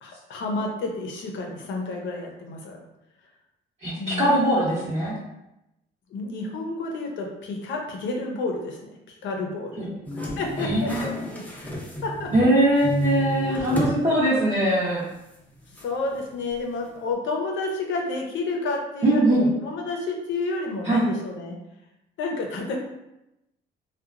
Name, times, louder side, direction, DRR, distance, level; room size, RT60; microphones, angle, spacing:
voice 1, 0.0-2.8 4.0-4.4 6.1-9.9 10.4-11.7 12.0-12.3 13.5-14.0 15.8-21.6 22.2-22.8, left 3 dB, 70° left, 1 dB, 0.6 m, -30 dB
voice 2, 3.8-5.2 9.8-9.9 10.6-11.1 12.3-15.0 19.0-19.5 20.8-21.1, right 1 dB, 30° right, -9 dB, 0.8 m, -21 dB
sound 1, 10.0-12.5 12.8-14.0 14.4-14.5 15.8-15.9, equal, 10° left, 0.6 m, -30 dB
2.7 x 2.2 x 2.4 m, 0.89 s
cardioid pair, 90°, 20 cm